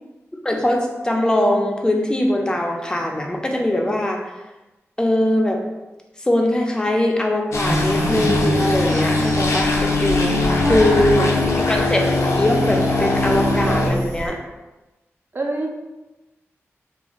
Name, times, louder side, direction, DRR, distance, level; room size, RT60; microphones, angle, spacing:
voice 1, 0.4-4.2 5.0-5.6 6.2-10.4 10.7-11.3 11.5-14.4, left 1 dB, 15° left, 1 dB, 0.4 m, -21 dB
sound 1, 7.5-13.9, left 2 dB, 75° left, 0.4 m, -20 dB
sound 2, 7.5-14.3, right 1 dB, 75° right, 0.8 m, -30 dB
voice 2, 10.6-11.7 15.3-15.7, right 2 dB, 45° right, 1 dB, 0.4 m, -27 dB
2.5 x 2.4 x 2.9 m, 1.1 s
wide cardioid pair, 70°, 5 cm